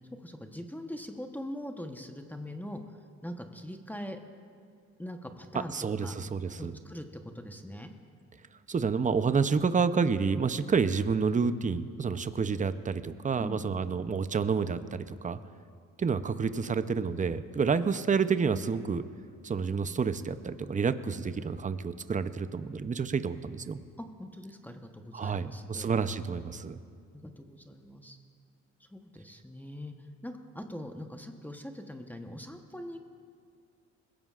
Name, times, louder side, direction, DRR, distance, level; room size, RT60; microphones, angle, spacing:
voice 1, 0.2-2.8 3.2-4.2 5.0-5.7 6.0-6.1 6.6-7.9 13.4-13.6 24.0-25.9 27.1-28.2 28.9-29.9 30.2-33.1, left 1 dB, 5° left, 4 dB, 1.0 m, -42 dB
voice 2, 5.7-6.8 8.7-15.4 16.0-19.0 19.4-23.8 25.1-26.8, right 5 dB, 25° right, 11 dB, 0.7 m, -29 dB
21.5 x 16.5 x 2.5 m, 2.2 s
cardioid pair, 75°, 31 cm